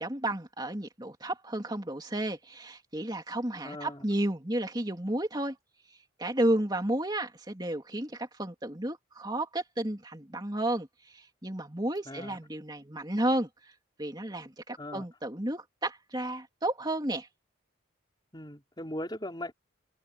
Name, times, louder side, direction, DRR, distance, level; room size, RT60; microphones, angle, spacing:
voice 1, 0.0-5.6 6.2-13.7 14.0-17.3, right 1 dB, 20° right, 3.0 m, -32 dB
voice 2, 3.6-4.0 12.0-12.4 14.8-15.0 18.3-19.5, left 1 dB, 20° left, 4.9 m, -39 dB
head